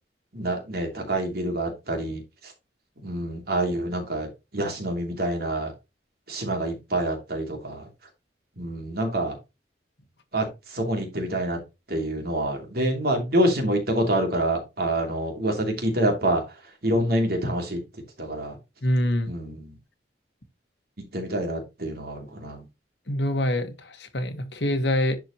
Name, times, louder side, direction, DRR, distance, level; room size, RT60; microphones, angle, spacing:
voice 1, 0.3-2.5 3.0-5.7 6.3-7.9 8.6-9.4 10.3-11.6 11.9-16.4 16.8-17.8 18.2-18.6 19.3-19.7 21.1-22.6, right 1 dB, 60° right, 2.9 m, -27 dB
voice 2, 18.8-19.3 23.1-25.2, left 1 dB, 75° left, 1.6 m, -25 dB
10.5 x 4.7 x 3.0 m
head